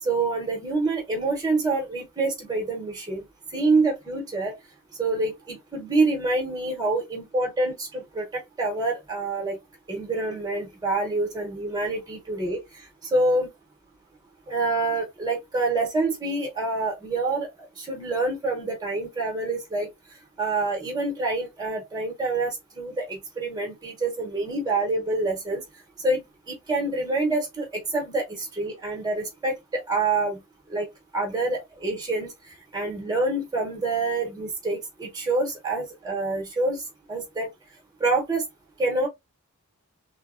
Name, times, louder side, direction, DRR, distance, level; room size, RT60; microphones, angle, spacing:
voice 1, 0.0-3.2 3.5-4.5 5.0-9.6 9.9-13.5 14.5-19.9 20.4-25.6 26.0-30.4 30.7-30.9 31.1-37.5 38.0-38.5 38.8-39.1, right 2 dB, 15° right, 0.7 m, -27 dB
3.2 x 2.0 x 2.3 m
head